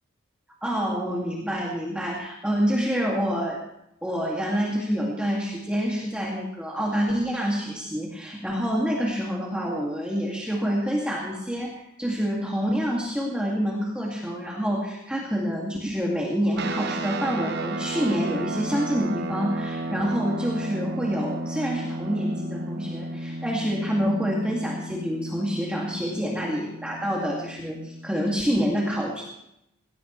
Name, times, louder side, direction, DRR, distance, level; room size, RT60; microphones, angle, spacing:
voice 1, 0.6-3.6 4.0-29.2, equal, 5° right, -4 dB, 2.4 m, -27 dB
sound 1, 16.6-28.3, right 2 dB, 50° right, 0.9 m, -33 dB
20.0 x 18.5 x 3.3 m, 0.79 s
head